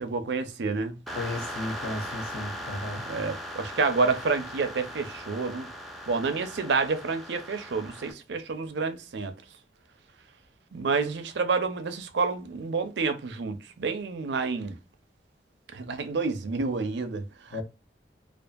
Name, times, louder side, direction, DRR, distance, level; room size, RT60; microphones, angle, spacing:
voice 1, 0.0-1.0 3.1-5.7 6.1-9.3 10.7-14.8 15.7-17.6, right 4 dB, 70° right, 0.5 m, -29 dB
sound 1, 1.1-8.1, equal, ahead, 0.4 m, -39 dB
voice 2, 1.2-3.0 17.5-17.6, left 2 dB, 55° left, 0.6 m, -34 dB
2.6 x 2.4 x 2.2 m
head